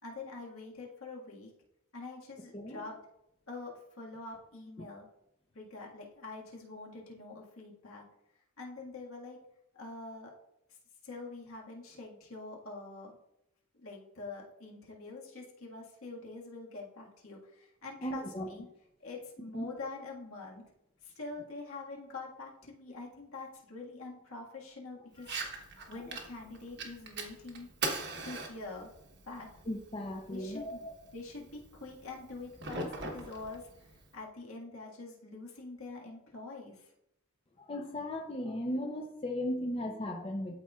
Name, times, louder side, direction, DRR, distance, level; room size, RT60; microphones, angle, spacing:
voice 1, 0.0-1.5 1.9-3.0 3.5-5.1 5.5-8.0 8.6-9.4 9.7-10.3 11.0-13.2 13.8-18.6 19.0-20.6 21.0-25.3 25.9-27.7 28.2-28.9 29.2-29.5 30.3-30.8 31.1-36.9, left 3 dB, 75° left, -2 dB, 1.7 m, -45 dB
voice 2, 2.5-2.8 4.8-4.9 18.0-18.5 19.5-19.7 25.2-25.3 25.8-25.9 29.6-30.9 37.6-40.5, left 1 dB, 25° left, 2 dB, 0.6 m, -37 dB
Fire, 25.2-34.2, right 3 dB, 50° right, 1.1 m, -42 dB
12.5 x 4.2 x 2.4 m, 0.81 s
head